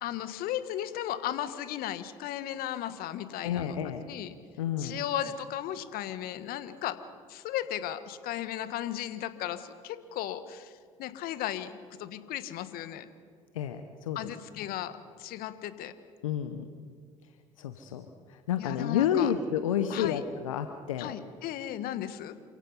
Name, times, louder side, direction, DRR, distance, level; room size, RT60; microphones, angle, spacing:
voice 1, 0.0-3.8 4.1-4.3 4.8-7.0 7.3-10.7 11.0-13.1 14.1-14.9 15.2-15.9 18.6-19.3 19.9-20.2 21.0-22.4, left 12 dB, 65° left, 12 dB, 1.4 m, -35 dB
voice 2, 3.4-4.0 4.6-5.0 13.5-14.3 14.6-14.7 16.2-16.7 17.6-21.2, left 9 dB, 85° left, 9 dB, 0.9 m, -30 dB
28.5 x 16.5 x 5.6 m, 2.1 s
hypercardioid pair, 55°, 17 cm